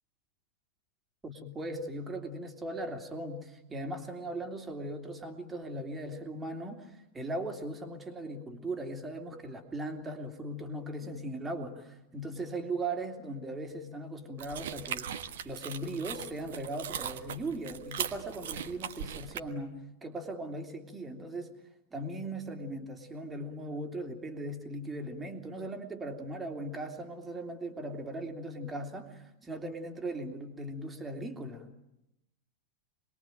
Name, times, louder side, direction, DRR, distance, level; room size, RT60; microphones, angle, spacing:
voice 1, 1.2-21.5 21.9-31.7, right 1 dB, 15° right, 4 dB, 3.2 m, -38 dB
sound 1, 14.4-19.4, right 9 dB, 60° right, 1.4 m, -39 dB
27.0 x 21.5 x 9.1 m, 0.89 s
figure-of-eight pair, 90°, 0 cm